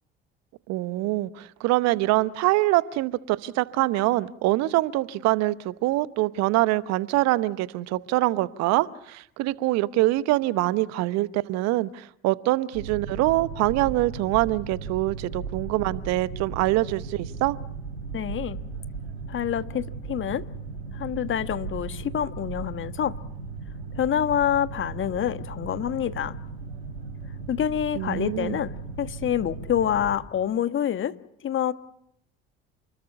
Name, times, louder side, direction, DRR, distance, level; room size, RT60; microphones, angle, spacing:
voice 1, 0.7-17.6 27.9-28.6, right 18 dB, 55° right, 0.9 m, -24 dB
Boat Water vehicle, 12.7-30.2, right 5 dB, 85° right, 4.7 m, -37 dB
voice 2, 18.1-18.6 19.3-20.4 20.9-23.2 24.0-26.4 27.5-31.1 31.4-31.7, left 10 dB, 40° left, 1.3 m, -27 dB
29.0 x 21.0 x 6.9 m
figure-of-eight pair, 55°, 32 cm